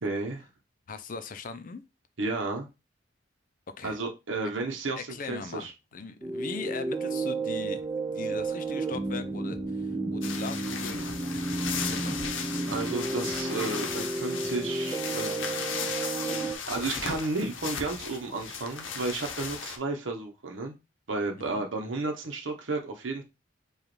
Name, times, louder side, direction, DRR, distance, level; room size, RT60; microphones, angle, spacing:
voice 1, 0.0-0.4 2.2-2.7 3.8-5.7 12.7-15.6 16.7-20.7 21.1-23.2, right 3 dB, 85° right, 0.8 m, -32 dB
voice 2, 0.9-1.8 3.8-4.0 5.0-7.8 8.1-11.1 11.7-12.1 21.4-21.7, left 4 dB, 45° left, 0.5 m, -40 dB
sound 1, 6.2-16.6, right 3 dB, 15° right, 0.4 m, -32 dB
sound 2, 10.2-19.8, left 6 dB, 85° left, 0.7 m, -36 dB
5.0 x 2.4 x 3.1 m
head